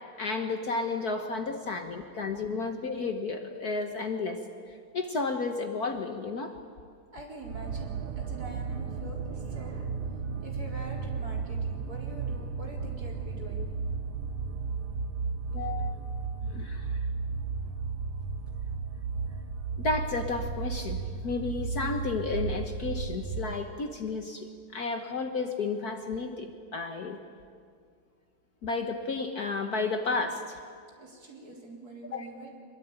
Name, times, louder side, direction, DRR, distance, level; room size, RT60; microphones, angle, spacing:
voice 1, 0.2-4.4 4.7-6.5 15.5-16.0 16.4-17.1 19.8-27.2 28.6-30.6 32.1-32.3, left 3 dB, 50° left, 6 dB, 1.6 m, -32 dB
voice 2, 1.9-2.5 7.1-14.0 17.6-17.8 19.6-19.7 31.0-32.6, right 1 dB, 45° right, -1 dB, 4.7 m, -46 dB
sound 1, 7.4-23.7, right 5 dB, 90° right, 2.0 m, -34 dB
25.5 x 21.5 x 9.0 m, 2.1 s
omnidirectional pair, 2.3 m